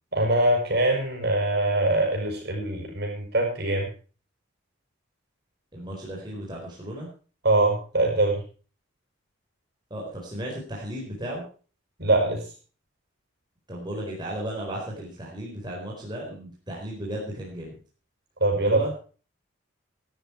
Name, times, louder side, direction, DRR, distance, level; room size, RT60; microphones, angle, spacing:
voice 1, 0.1-3.9 7.4-8.4 12.0-12.4 18.4-18.9, right 2 dB, 50° right, 1 dB, 6.7 m, -23 dB
voice 2, 5.7-7.1 9.9-11.4 13.7-17.8 18.6-18.9, right 1 dB, 20° right, -3 dB, 4.5 m, -35 dB
14.0 x 13.0 x 4.5 m, 0.37 s
head